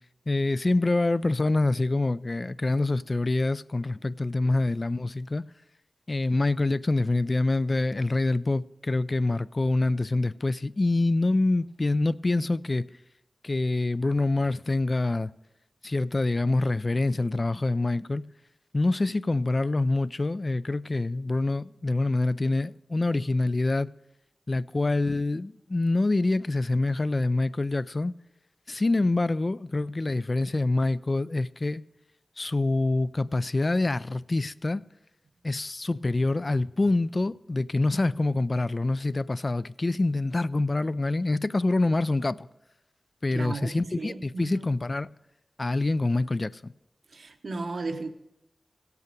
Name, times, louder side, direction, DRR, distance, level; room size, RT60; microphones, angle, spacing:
voice 1, 0.3-5.4 6.1-12.9 13.4-15.3 15.8-18.2 18.7-23.9 24.5-28.1 28.7-31.8 32.4-34.8 35.4-42.5 43.2-45.1 45.6-46.7, left 2 dB, 40° left, 0.3 m, -26 dB
voice 2, 43.3-44.7 47.1-48.1, right 3 dB, 70° right, 0.9 m, -35 dB
16.5 x 8.3 x 5.2 m
wide cardioid pair, 75°, 0 cm